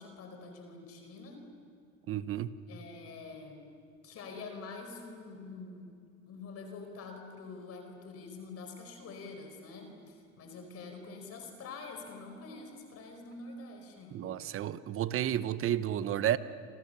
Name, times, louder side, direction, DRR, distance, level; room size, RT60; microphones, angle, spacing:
voice 1, 0.0-1.5 2.7-3.7 4.0-6.0 6.3-14.4, left 3 dB, 35° left, 5 dB, 4.8 m, -46 dB
voice 2, 2.1-2.5 14.1-16.4, right 11 dB, 30° right, 15 dB, 1.0 m, -31 dB
29.0 x 26.5 x 6.9 m, 2.4 s
hypercardioid pair, 110°, 41 cm